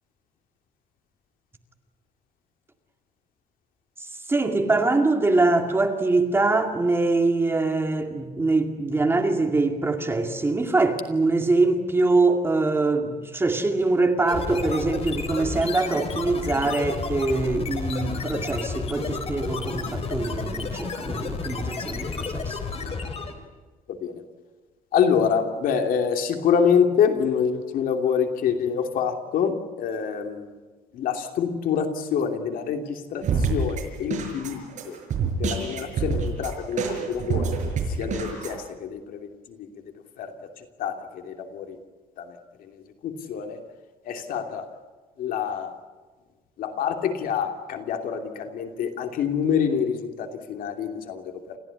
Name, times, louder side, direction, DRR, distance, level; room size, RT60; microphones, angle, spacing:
voice 1, 4.3-22.6, right 3 dB, 15° right, 2.2 m, -23 dB
sound 1, 14.3-23.4, left 4 dB, 40° left, 3.4 m, -31 dB
voice 2, 24.9-30.4 30.9-34.9 35.4-37.5 38.0-39.0 40.2-40.3 40.8-40.9 41.3-41.6 43.0-43.6 44.1-44.6 45.2-45.7 46.6-51.2 51.5-51.6, left 7 dB, 70° left, 2.9 m, -26 dB
sound 2, 33.2-38.5, right 5 dB, 55° right, 5.8 m, -27 dB
29.0 x 15.0 x 9.8 m
cardioid pair, 145°, 15 cm